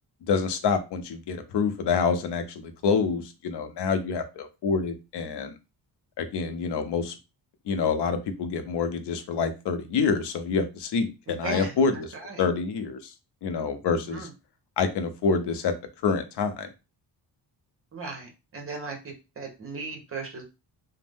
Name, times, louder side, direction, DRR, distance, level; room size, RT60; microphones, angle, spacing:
voice 1, 0.3-5.6 6.2-7.1 7.7-12.1 12.4-13.1 13.4-14.3 14.8-15.7 16.0-16.7, left 5 dB, 75° left, 8 dB, 0.6 m, -27 dB
voice 2, 11.4-11.7 12.1-12.4 14.1-14.3 17.9-20.4, right 3 dB, 30° right, 3 dB, 0.9 m, -36 dB
2.5 x 2.0 x 3.4 m, 0.28 s
wide cardioid pair, 135°, 41 cm